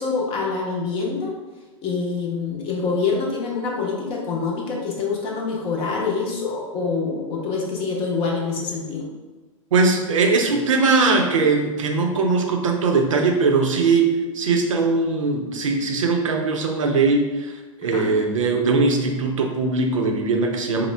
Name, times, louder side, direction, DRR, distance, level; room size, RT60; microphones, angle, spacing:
voice 1, 0.0-1.3 1.8-9.1 17.9-18.1, left 4 dB, 30° left, -2 dB, 0.7 m, -25 dB
voice 2, 9.7-20.9, right 4 dB, 65° right, 3 dB, 0.6 m, -20 dB
4.4 x 2.1 x 3.2 m, 1.2 s
figure-of-eight pair, 105°, 17 cm